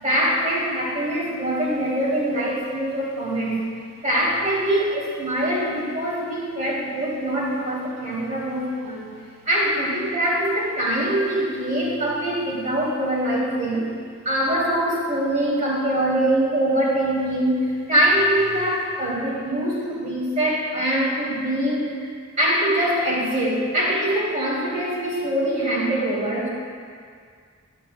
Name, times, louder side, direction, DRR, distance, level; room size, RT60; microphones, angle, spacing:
voice 1, 0.0-3.6 4.0-9.1 9.4-13.8 14.2-22.0 22.4-26.5, right 1 dB, 35° right, -6 dB, 2.9 m, -23 dB
22.5 x 7.6 x 2.3 m, 2.1 s
head